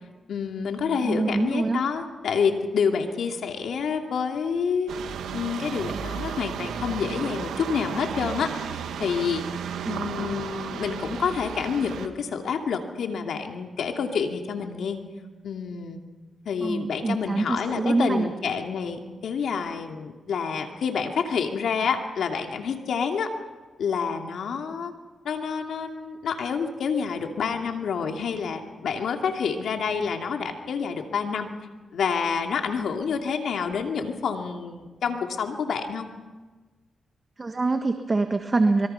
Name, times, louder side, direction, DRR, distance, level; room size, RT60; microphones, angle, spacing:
voice 1, 0.3-4.9 5.3-9.4 9.9-15.0 15.4-16.0 16.4-23.3 23.8-24.9 25.2-31.5 31.9-36.1, left 6 dB, 75° left, 4 dB, 2.6 m, -28 dB
voice 2, 1.0-1.8 9.8-9.9 16.6-18.3 37.4-38.9, right 3 dB, 35° right, 6 dB, 1.5 m, -24 dB
sound 1, 4.9-12.1, right 7 dB, 85° right, 1.6 m, -34 dB
25.0 x 23.0 x 5.8 m, 1.3 s
cardioid pair, 65°, 0 cm